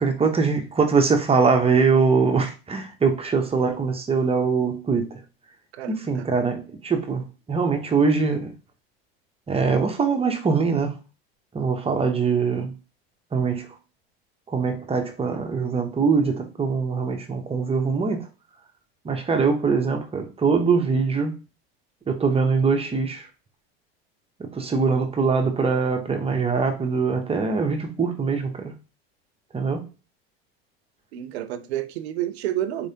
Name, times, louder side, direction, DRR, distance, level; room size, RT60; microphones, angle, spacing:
voice 1, 0.0-5.2 5.9-8.5 9.5-11.0 11.5-12.7 13.3-13.8 14.5-18.3 19.0-21.4 22.1-23.3 24.4-28.7 29.5-29.9, right 5 dB, 20° right, 0.9 m, -23 dB
voice 2, 5.7-6.3 31.1-32.9, right 12 dB, 90° right, 0.6 m, -30 dB
4.2 x 3.3 x 2.8 m
supercardioid pair, 110°, 31 cm